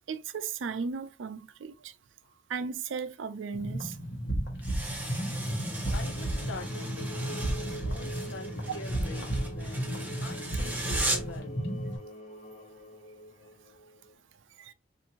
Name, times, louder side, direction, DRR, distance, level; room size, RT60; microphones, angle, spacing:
voice 1, 0.1-2.0 2.5-4.0 14.6-14.7, right 5 dB, 80° right, 0.4 m, -36 dB
sound 1, 3.5-12.0, right 1 dB, 60° left, 1.1 m, -33 dB
sound 2, 4.6-11.4, right 2 dB, 10° right, 0.7 m, -37 dB
sound 3, 5.1-14.1, equal, 35° left, 0.7 m, -46 dB
voice 2, 5.9-11.6, left 3 dB, 85° left, 0.6 m, -45 dB
4.3 x 2.6 x 2.8 m
head